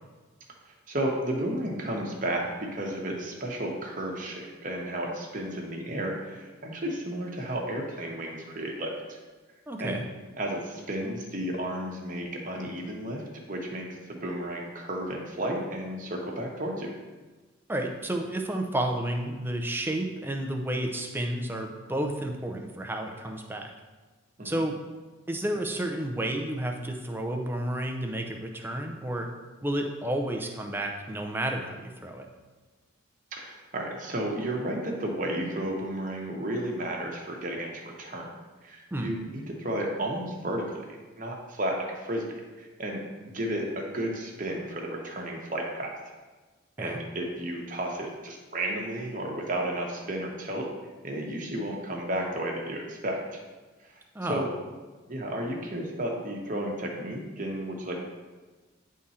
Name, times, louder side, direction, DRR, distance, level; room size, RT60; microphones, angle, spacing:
voice 1, 0.9-9.2 9.8-10.0 10.4-13.2 13.5-16.9 24.4-24.6 33.3-38.3 38.6-40.9 41.2-43.0 43.2-46.0 46.8-50.7 51.0-53.4 53.8-54.0 54.3-54.5 55.1-58.0, right 1 dB, 40° right, 0 dB, 1.1 m, -33 dB
voice 2, 9.7-10.0 17.7-23.7 24.4-24.8 25.3-29.3 29.6-32.3 38.9-39.1 46.8-47.0 54.1-54.4, right 1 dB, 10° right, 2 dB, 0.5 m, -31 dB
9.9 x 3.7 x 4.2 m, 1.3 s
head